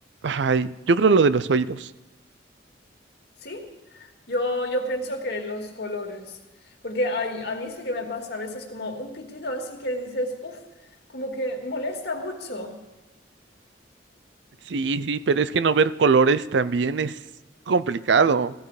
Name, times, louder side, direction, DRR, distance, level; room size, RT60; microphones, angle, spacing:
voice 1, 0.2-1.9 14.7-17.2 17.7-18.5, right 4 dB, 75° right, 16 dB, 0.5 m, -21 dB
voice 2, 3.9-6.4 6.8-10.6 11.1-12.8, left 1 dB, 60° left, 1 dB, 2.3 m, -30 dB
16.0 x 14.5 x 4.9 m, 1.1 s
head